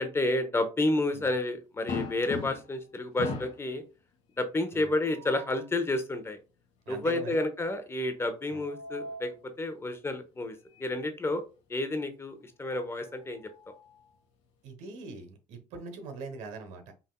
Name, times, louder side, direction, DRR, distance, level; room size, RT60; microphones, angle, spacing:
voice 1, 0.0-3.8 4.4-6.4 6.9-11.4 11.7-13.4, left 2 dB, 20° left, 0.8 m, -30 dB
sound 1, 1.9-2.8 3.2-3.7 4.9-5.6 8.3-9.3 10.8-10.9 11.3-11.4 12.9-14.2, left 4 dB, 65° left, 1.2 m, -40 dB
voice 2, 6.9-7.4 8.5-8.6 14.6-16.9, right 4 dB, 80° right, 1.0 m, -42 dB
5.6 x 2.6 x 2.2 m
supercardioid pair, 90°, 12 cm